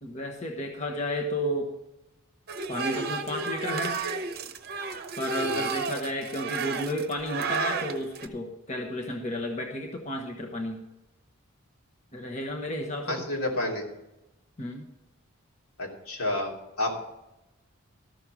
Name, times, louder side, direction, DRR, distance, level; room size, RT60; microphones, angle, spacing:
voice 1, 0.0-1.7 2.7-4.0 5.2-10.8 12.1-13.3 14.6-14.8, left 1 dB, 35° left, 1 dB, 1.1 m, -32 dB
sound 1, 2.5-8.3, right 5 dB, 45° right, 0.8 m, -32 dB
voice 2, 13.1-13.8 15.8-16.5 16.8-17.1, left 1 dB, 80° left, -2 dB, 2.9 m, -30 dB
13.0 x 6.5 x 6.1 m, 0.92 s
head